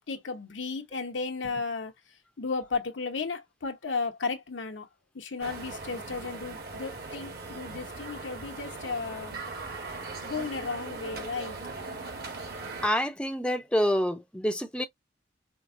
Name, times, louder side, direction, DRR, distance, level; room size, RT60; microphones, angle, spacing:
voice 1, 0.1-1.9 2.4-4.9 5.1-9.4 10.2-11.6, left 4 dB, 85° left, 0.8 m, -34 dB
sound 1, 5.4-12.9, right 3 dB, 55° right, 1.3 m, -39 dB
voice 2, 12.8-14.8, equal, 5° left, 0.5 m, -27 dB
4.5 x 2.1 x 2.5 m
head